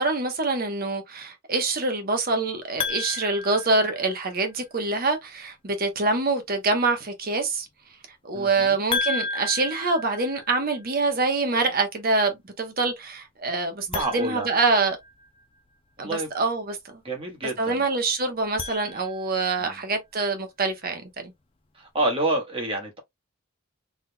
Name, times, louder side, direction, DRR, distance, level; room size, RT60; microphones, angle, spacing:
voice 1, 0.0-7.7 8.2-15.0 16.0-16.8 17.6-21.3, right 3 dB, 45° right, 1.0 m, -25 dB
sound 1, 2.8-4.5 8.9-10.9 13.8-15.4 18.3-19.5, left 4 dB, 25° left, 0.5 m, -33 dB
voice 2, 8.3-8.8 13.9-14.5 16.0-16.3 17.0-17.8 19.6-19.8 21.7-23.0, right 2 dB, 25° right, 1.3 m, -28 dB
4.1 x 3.6 x 2.2 m
head